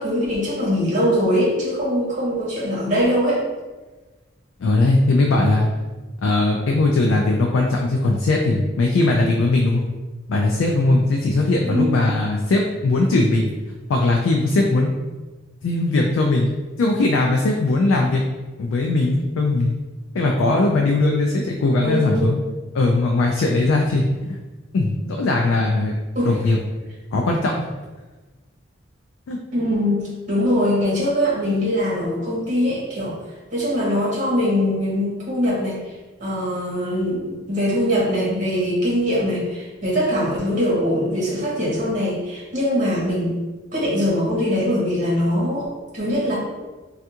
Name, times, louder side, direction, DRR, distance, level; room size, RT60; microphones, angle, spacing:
voice 1, 0.0-3.4 11.6-12.0 21.8-22.3 26.1-26.4 29.5-33.1 33.5-35.8 36.2-43.3 43.7-45.7 45.9-46.3, equal, 35° right, -6 dB, 1.0 m, -22 dB
voice 2, 4.6-5.7 6.2-9.9 10.3-13.5 13.9-14.9 15.6-16.5 16.8-18.2 18.6-19.7 20.1-22.4 22.7-24.1 24.7-26.0 26.2-26.6 27.1-27.5 29.3-29.4, left 2 dB, 80° left, 1 dB, 0.3 m, -19 dB
3.4 x 2.4 x 2.8 m, 1.2 s
head